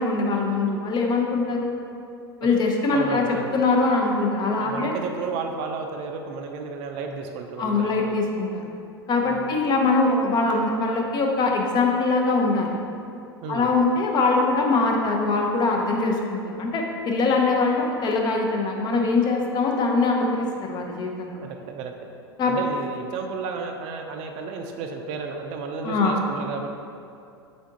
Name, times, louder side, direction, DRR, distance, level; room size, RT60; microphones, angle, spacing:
voice 1, 0.0-1.7 2.4-3.2 3.5-4.9 7.6-8.6 9.1-12.8 13.5-21.4 22.4-22.5 25.8-26.2, left 3 dB, 30° left, 1 dB, 0.6 m, -22 dB
voice 2, 2.9-3.6 4.5-8.2 9.2-9.5 13.4-13.7 21.4-22.1 22.5-26.7, right 5 dB, 45° right, 4 dB, 0.4 m, -32 dB
3.7 x 3.5 x 3.7 m, 2.5 s
hypercardioid pair, 90°, 14 cm